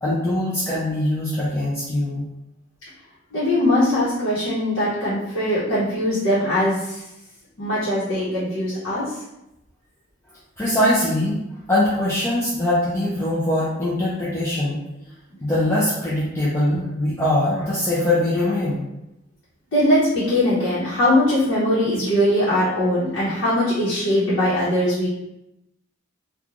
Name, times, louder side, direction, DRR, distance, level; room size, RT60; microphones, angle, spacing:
voice 1, 0.0-2.3 10.6-11.4 11.7-14.8 15.4-18.8, left 1 dB, 10° left, -9 dB, 0.4 m, -22 dB
voice 2, 3.3-7.0 7.6-9.1 19.7-25.1, left 1 dB, 60° left, -11 dB, 0.9 m, -21 dB
3.0 x 2.2 x 2.5 m, 0.89 s
head